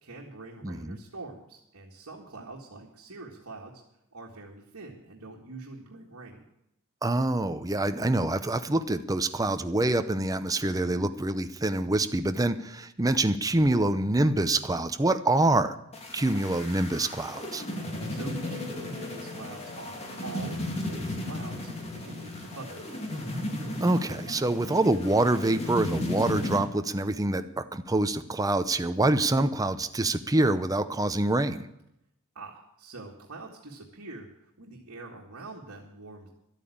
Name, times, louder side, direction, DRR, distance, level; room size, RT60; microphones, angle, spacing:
voice 1, 0.0-3.8 4.1-6.4 18.1-21.6 21.9-23.3 32.4-36.3, right 3 dB, 75° right, -2 dB, 1.9 m, -44 dB
voice 2, 0.6-1.0 7.0-15.8 16.1-17.6 23.8-31.7, right 2 dB, 15° right, 10 dB, 0.6 m, -26 dB
sound 1, 15.9-26.6, left 1 dB, 30° left, 2.3 m, -35 dB
12.0 x 9.1 x 8.6 m, 0.81 s
head